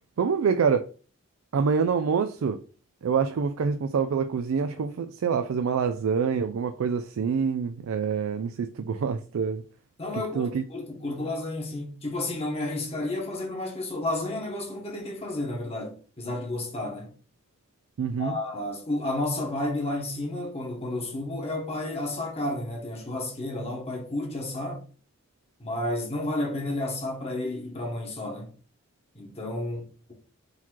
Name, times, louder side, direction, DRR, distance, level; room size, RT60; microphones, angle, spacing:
voice 1, 0.2-0.9 1.5-2.6 3.0-9.6 10.1-10.6 18.0-18.4, right 6 dB, 80° right, 0.4 m, -26 dB
voice 2, 10.0-17.1 18.2-24.8 25.6-28.5 29.1-30.1, left 2 dB, 30° left, 1.1 m, -31 dB
3.9 x 2.9 x 4.5 m
head